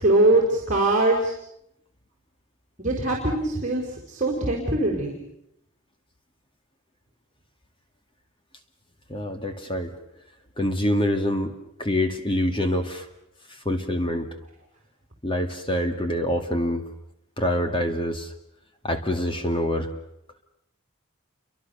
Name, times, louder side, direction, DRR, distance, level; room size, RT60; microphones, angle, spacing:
voice 1, 0.0-1.3 2.8-5.1, right 2 dB, 35° right, -1 dB, 4.4 m, -22 dB
voice 2, 9.1-9.9 10.6-13.1 13.5-14.3 15.2-16.8 17.4-18.3 18.8-19.9, equal, 25° left, 7 dB, 2.2 m, -26 dB
29.5 x 24.5 x 6.9 m, 0.80 s
head